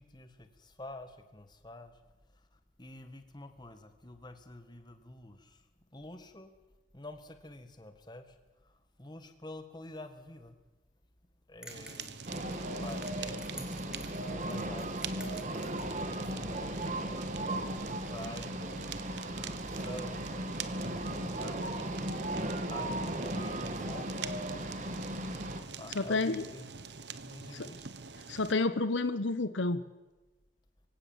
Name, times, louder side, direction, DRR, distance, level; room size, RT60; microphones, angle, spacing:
voice 1, 0.0-2.0 2.8-5.6 5.9-6.5 6.9-8.4 8.6-10.6 11.5-12.2 12.8-15.6 16.1-17.1 17.7-22.1 22.7-24.3 25.7-26.7 27.2-27.9, left 1 dB, 25° left, 8 dB, 1.8 m, -48 dB
sound 1, 11.6-16.0, right 1 dB, 5° right, 2.0 m, -51 dB
Fire, 11.7-28.5, right 6 dB, 60° right, 1.1 m, -45 dB
sound 2, 12.3-25.6, right 1 dB, 40° right, 2.0 m, -36 dB
voice 2, 25.9-26.4 27.5-27.7 28.3-29.9, left 3 dB, 80° left, 13 dB, 1.0 m, -30 dB
24.5 x 16.5 x 7.4 m, 1.1 s
head